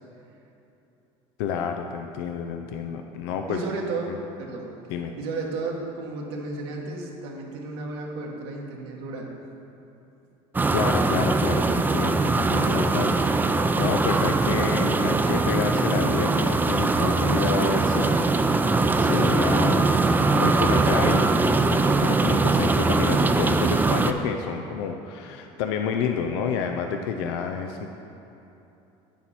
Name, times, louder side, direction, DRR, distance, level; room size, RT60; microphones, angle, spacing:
voice 1, 1.4-3.6 4.1-4.2 4.9-5.2 10.7-13.1 13.8-18.2 19.0-19.9 20.4-27.9, left 6 dB, 90° left, 5 dB, 0.5 m, -29 dB
voice 2, 3.5-4.7 5.2-9.3, right 3 dB, 85° right, -1 dB, 1.5 m, -33 dB
sound 1, 10.5-24.1, right 3 dB, 15° right, 0.4 m, -22 dB
9.1 x 7.1 x 4.2 m, 2.9 s
supercardioid pair, 100°, 13 cm